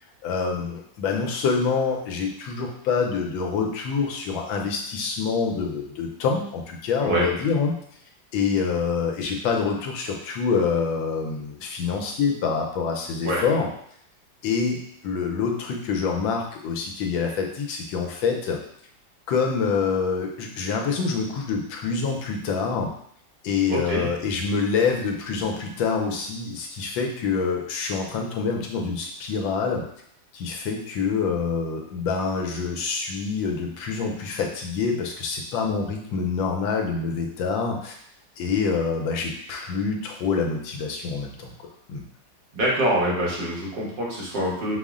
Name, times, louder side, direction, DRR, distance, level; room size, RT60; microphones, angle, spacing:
voice 1, 0.2-7.7 8.3-13.7 14.4-14.8 15.0-18.6 19.3-22.9 23.4-29.8 30.3-38.0 38.4-42.0, left 5 dB, 80° left, 1 dB, 1.5 m, -26 dB
voice 2, 23.7-24.1 42.5-44.8, right 1 dB, 65° right, -5 dB, 1.9 m, -25 dB
5.4 x 2.1 x 3.6 m, 0.67 s
omnidirectional pair, 2.1 m